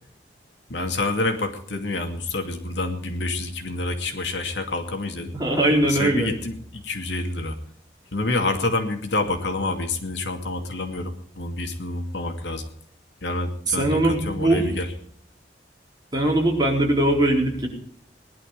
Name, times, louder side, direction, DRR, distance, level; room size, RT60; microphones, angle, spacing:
voice 1, 0.7-5.3 5.8-7.6 8.1-12.7 13.2-14.9, left 2 dB, 80° left, 5 dB, 2.4 m, -28 dB
voice 2, 5.3-6.3 13.7-14.7 16.1-17.7, right 1 dB, 25° right, -2 dB, 4.5 m, -21 dB
20.0 x 11.5 x 5.1 m, 0.63 s
head